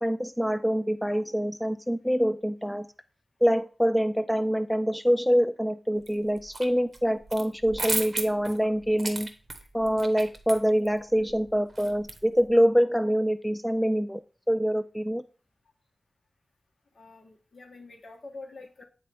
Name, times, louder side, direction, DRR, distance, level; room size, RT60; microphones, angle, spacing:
voice 1, 0.0-2.9 3.4-9.3 9.7-14.2 14.5-15.2, equal, 5° left, 11 dB, 0.3 m, -25 dB
sound 1, 6.1-6.7 6.9-12.5, right 2 dB, 45° right, 0.9 m, -35 dB
voice 2, 16.9-18.8, left 3 dB, 75° left, 2 dB, 1.5 m, -46 dB
8.7 x 4.2 x 3.4 m, 0.37 s
wide cardioid pair, 110°, 0 cm